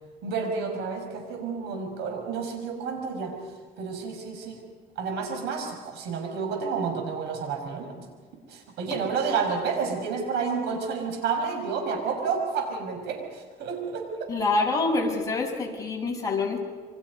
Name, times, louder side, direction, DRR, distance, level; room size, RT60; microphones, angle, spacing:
voice 1, 0.2-3.3 3.8-4.6 5.0-8.1 8.5-14.3, right 5 dB, 85° right, 3 dB, 6.2 m, -30 dB
voice 2, 14.3-16.6, left 3 dB, 20° left, -1 dB, 6.7 m, -26 dB
28.5 x 25.5 x 5.5 m, 1.5 s
cardioid pair, 110°, 17 cm